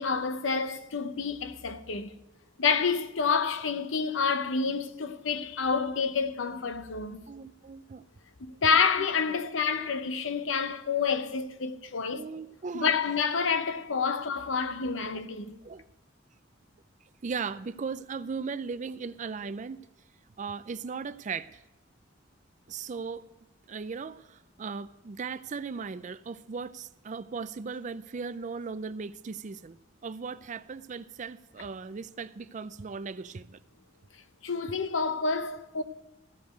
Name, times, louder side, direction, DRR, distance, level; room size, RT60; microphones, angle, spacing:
voice 1, 0.0-2.1 2.6-7.2 8.4-12.2 12.7-15.6 34.4-35.8, left 5 dB, 85° left, 0.8 m, -28 dB
voice 2, 7.3-8.0 9.0-9.1 9.4-9.6 12.1-12.9 15.6-15.8 17.2-19.8 20.4-21.5 22.7-23.2 23.7-33.6, right 5 dB, 40° right, 0.4 m, -37 dB
14.5 x 5.2 x 9.0 m
head